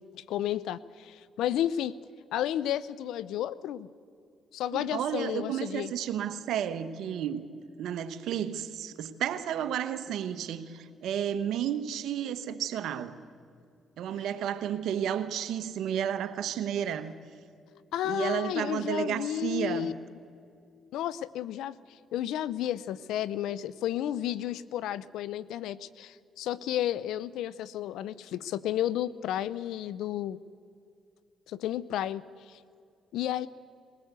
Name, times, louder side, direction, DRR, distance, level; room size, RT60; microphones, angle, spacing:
voice 1, 0.1-1.9 2.3-3.9 4.5-5.9 17.9-19.9 20.9-21.8 22.1-30.4 31.5-32.6 33.1-33.5, left 11 dB, 85° left, 19 dB, 0.6 m, -32 dB
voice 2, 4.7-7.5 7.8-13.2 14.0-17.1 18.0-19.9, right 9 dB, 80° right, 11 dB, 1.1 m, -32 dB
20.5 x 18.0 x 8.2 m, 2.5 s
supercardioid pair, 70°, 0 cm